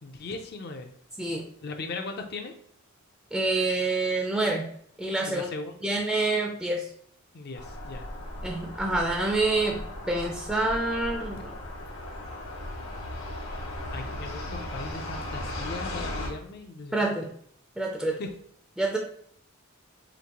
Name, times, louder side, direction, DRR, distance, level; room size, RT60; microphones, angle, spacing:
voice 1, 0.0-0.9 1.6-2.5 5.3-6.0 7.3-8.1 13.9-17.1 18.2-18.3, left 3 dB, 50° left, 4 dB, 0.5 m, -38 dB
voice 2, 3.3-4.7 5.0-5.5 5.8-6.9 8.4-11.5 16.9-17.3 17.8-18.2 18.8-19.0, right 2 dB, ahead, 0 dB, 0.4 m, -27 dB
sound 1, 7.5-16.3, left 1 dB, 65° left, 1.1 m, -37 dB
5.1 x 2.5 x 2.9 m, 0.64 s
head